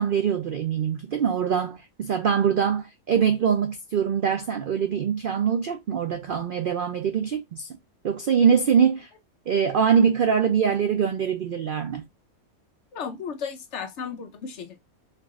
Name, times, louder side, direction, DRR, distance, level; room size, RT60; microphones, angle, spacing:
voice 1, 0.0-7.7 8.0-9.1 9.5-12.0, right 7 dB, 70° right, 0.5 m, -23 dB
voice 2, 12.9-14.8, left 6 dB, 60° left, 0.8 m, -34 dB
4.6 x 2.4 x 3.5 m
omnidirectional pair, 1.5 m